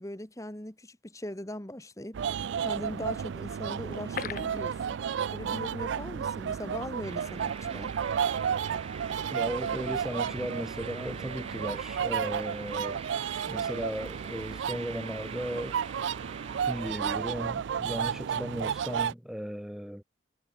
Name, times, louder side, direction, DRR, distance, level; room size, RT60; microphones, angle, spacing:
voice 1, 0.0-2.2 2.6-5.0 5.3-7.9, left 1 dB, 15° left, 1.6 m, -40 dB
sound 1, 2.1-19.1, right 7 dB, 65° right, 0.3 m, -32 dB
sound 2, 3.9-5.6 5.9-6.0 6.4-6.6, left 7 dB, 45° left, 0.5 m, -39 dB
sound 3, 7.0-16.9, right 5 dB, 30° right, 2.4 m, -45 dB
voice 2, 9.3-13.0 13.5-15.8 16.6-20.0, equal, ahead, 0.9 m, -36 dB
head